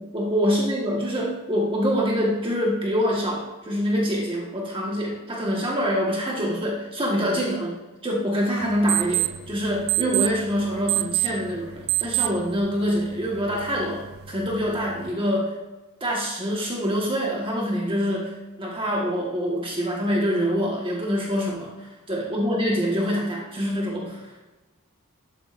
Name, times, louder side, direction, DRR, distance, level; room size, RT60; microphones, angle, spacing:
voice 1, 0.0-7.8 8.0-15.5 16.0-18.3 18.6-24.4, equal, 25° right, -2 dB, 1.5 m, -25 dB
sound 1, 8.6-15.1, right 17 dB, 45° right, 0.5 m, -29 dB
12.5 x 7.8 x 2.6 m, 1.1 s
head